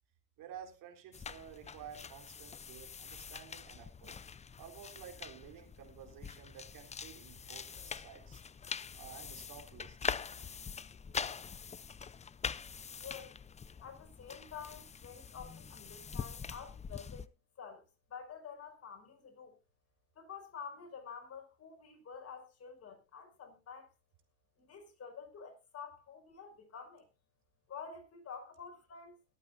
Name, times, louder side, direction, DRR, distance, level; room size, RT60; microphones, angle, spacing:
voice 1, 0.4-4.2 4.6-8.4 8.9-10.1 12.2-12.3, right 8 dB, 65° right, 4.0 m, -52 dB
sound 1, 1.1-17.3, left 6 dB, 20° left, 0.5 m, -44 dB
voice 2, 13.0-13.3 13.8-17.3 17.6-17.8 18.1-19.5 20.2-23.9 24.6-27.1 27.7-29.2, left 6 dB, 40° left, 5.3 m, -49 dB
22.5 x 8.7 x 2.7 m
supercardioid pair, 85°, 36 cm